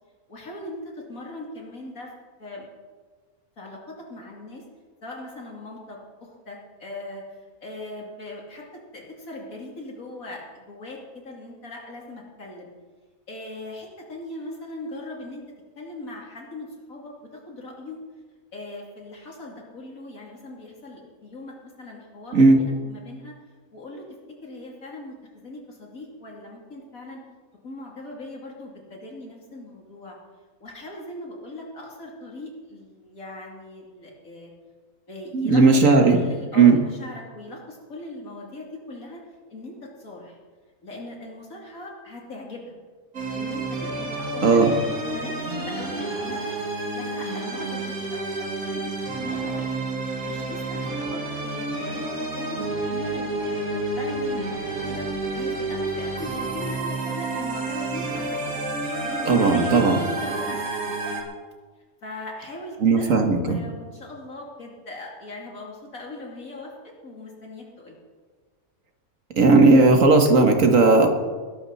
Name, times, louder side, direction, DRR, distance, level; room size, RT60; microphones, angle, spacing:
voice 1, 0.3-2.1 2.4-2.7 3.6-4.6 5.0-7.2 7.6-12.7 13.3-15.4 15.8-17.1 17.5-18.0 18.5-23.3 23.7-24.1 24.4-27.2 27.6-30.2 30.6-34.5 35.1-39.2 39.5-40.4 40.8-42.8 43.3-44.6 45.0-48.9 49.2-49.7 50.2-52.0 52.4-52.6 52.9-58.6 59.1-60.9 62.0-68.0, left 1 dB, 75° left, -2 dB, 3.3 m, -39 dB
voice 2, 22.3-22.6 35.3-36.2 36.5-36.8 44.4-44.7 59.3-60.0 62.8-63.6 69.4-71.1, right 3 dB, 65° right, 4 dB, 1.9 m, -16 dB
sound 1, 43.1-61.2, right 2 dB, 90° right, 2.5 m, -30 dB
19.5 x 12.0 x 4.2 m, 1.5 s
omnidirectional pair, 1.5 m